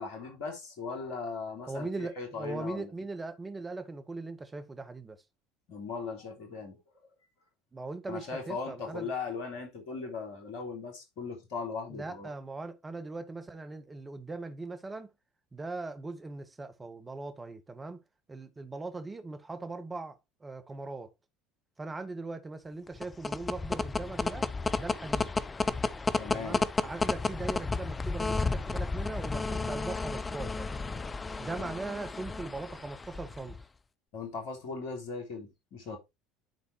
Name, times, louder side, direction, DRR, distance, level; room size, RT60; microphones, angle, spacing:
voice 1, 0.0-2.9 5.7-6.8 8.1-12.3 26.2-26.6 31.6-31.7 34.1-36.0, left 4 dB, 60° left, 3.1 m, -38 dB
voice 2, 1.7-5.2 7.7-9.1 11.9-15.1 15.5-18.0 18.3-21.1 21.8-24.5 24.8-25.3 26.3-30.7 31.4-33.6, right 3 dB, 20° right, 1.5 m, -40 dB
sound 1, 22.9-33.6, left 3 dB, 20° left, 0.6 m, -32 dB
10.5 x 4.1 x 3.2 m
hypercardioid pair, 70°, 0 cm